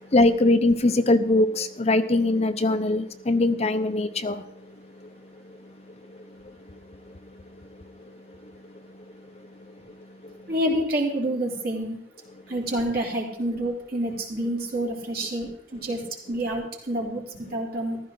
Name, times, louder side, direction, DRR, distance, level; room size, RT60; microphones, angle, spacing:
voice 1, 0.0-10.5, left 2 dB, 35° left, 0.7 m, -25 dB
voice 2, 10.5-12.0 12.5-16.0 16.3-18.0, right 1 dB, 55° right, 3.6 m, -28 dB
15.0 x 13.0 x 3.9 m
head